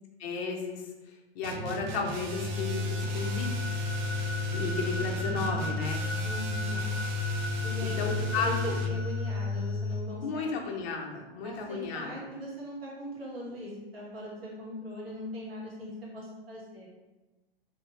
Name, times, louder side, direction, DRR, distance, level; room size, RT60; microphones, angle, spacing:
voice 1, 0.2-0.8 1.3-3.5 4.5-6.0 8.0-8.7 10.2-12.2, left 4 dB, 30° left, 0 dB, 0.6 m, -33 dB
sound 1, 1.4-9.0, right 2 dB, 50° right, 0.5 m, -39 dB
sound 2, 2.3-10.0, left 3 dB, 15° right, 1.0 m, -32 dB
voice 2, 6.2-7.0 7.6-8.0 8.3-10.8 11.4-16.9, equal, 75° right, -5 dB, 1.4 m, -40 dB
3.0 x 2.5 x 2.9 m, 1.1 s
figure-of-eight pair, 105°, 30 cm